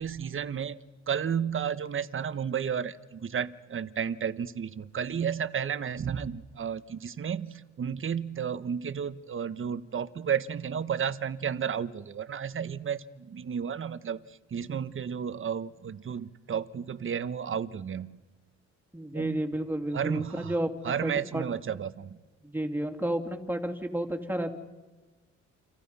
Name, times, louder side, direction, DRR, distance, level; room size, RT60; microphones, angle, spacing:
voice 1, 0.0-14.2 14.5-18.2 19.1-19.5 19.9-20.5 20.8-22.2, right 7 dB, 45° right, 13 dB, 1.3 m, -32 dB
voice 2, 18.9-21.4 22.4-24.5, right 1 dB, 5° right, 4 dB, 3.0 m, -31 dB
30.0 x 26.5 x 5.7 m, 1.2 s
cardioid pair, 90°, 30 cm